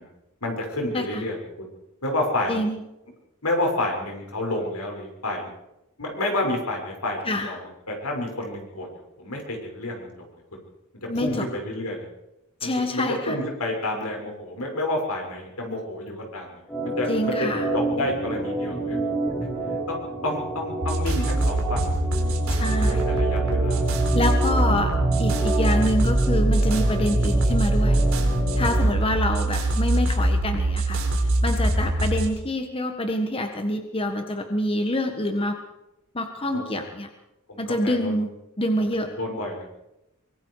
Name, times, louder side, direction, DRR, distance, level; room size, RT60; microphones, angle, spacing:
voice 1, 0.4-1.4 2.0-2.6 3.4-5.5 6.0-7.6 7.9-10.1 11.0-12.0 12.6-19.0 19.9-20.0 20.2-22.6 22.9-24.2 28.8-29.1 31.7-31.9 36.5-36.8 37.5-38.2 39.0-39.7, left 1 dB, 80° left, 1 dB, 6.3 m, -30 dB
voice 2, 2.5-2.8 7.3-7.5 11.1-11.5 12.6-13.3 17.1-17.7 22.5-23.0 24.1-24.9 25.2-28.0 28.5-31.0 31.4-35.6 36.1-37.1 37.6-38.3 38.6-39.1, left 1 dB, 25° left, 5 dB, 1.6 m, -26 dB
Organ, 16.7-28.8, right 1 dB, 10° left, 7.8 m, -28 dB
sound 1, 20.8-32.3, right 1 dB, 65° right, 4.6 m, -23 dB
24.0 x 23.0 x 4.9 m, 0.93 s
head